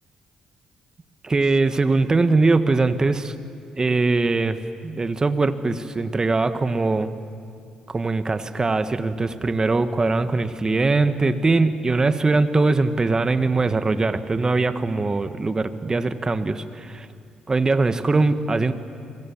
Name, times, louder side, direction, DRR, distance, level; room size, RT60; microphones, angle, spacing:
voice 1, 1.2-3.3 3.8-7.1 7.9-17.1 17.5-18.7, right 3 dB, 30° right, 11 dB, 1.6 m, -21 dB
27.5 x 24.0 x 7.4 m, 2.3 s
hypercardioid pair, 45°, 2 cm